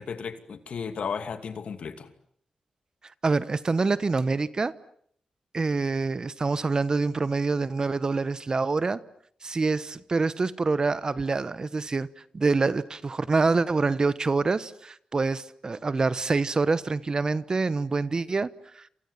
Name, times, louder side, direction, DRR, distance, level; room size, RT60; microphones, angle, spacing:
voice 1, 0.0-2.1, left 6 dB, 70° left, 2.7 m, -34 dB
voice 2, 3.2-4.7 5.5-9.0 9.4-12.1 12.3-18.5, right 3 dB, 40° right, 1.1 m, -26 dB
28.5 x 28.0 x 7.3 m
cardioid pair, 95°, 2 cm